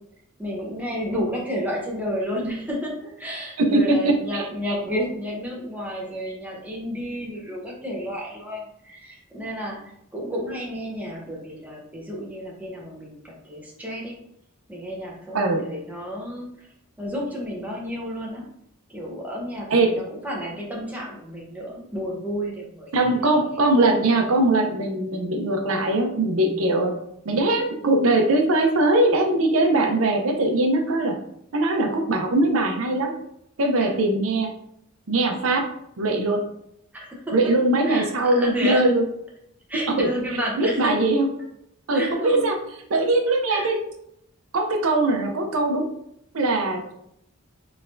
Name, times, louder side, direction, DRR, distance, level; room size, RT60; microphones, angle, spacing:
voice 1, 0.4-9.8 10.1-14.2 14.7-16.5 17.0-18.4 18.9-22.9 33.8-33.9 36.9-37.2 37.8-38.1 38.3-38.8 39.7-40.9 41.9-42.5 43.3-43.7, equal, 10° right, -4 dB, 0.9 m, -31 dB
voice 2, 4.0-4.5 15.3-15.7 19.7-19.9 22.9-26.9 27.2-31.1 31.5-33.1 33.6-34.5 35.1-35.6 36.0-36.4 37.3-39.0 40.0-40.1 40.6-41.3 41.9-42.6 42.9-43.8 44.5-45.9 46.3-46.9, right 2 dB, 80° right, 3 dB, 0.7 m, -21 dB
4.0 x 3.3 x 2.6 m, 0.75 s
head